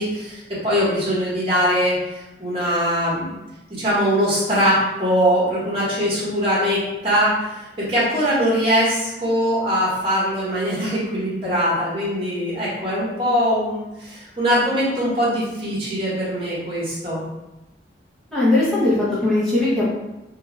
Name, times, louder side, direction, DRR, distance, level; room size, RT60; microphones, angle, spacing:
voice 1, 0.0-3.3 3.7-17.2, equal, 30° right, -8 dB, 1.1 m, -22 dB
voice 2, 18.3-19.9, left 2 dB, ahead, -10 dB, 0.7 m, -19 dB
2.4 x 2.3 x 3.1 m, 0.99 s
head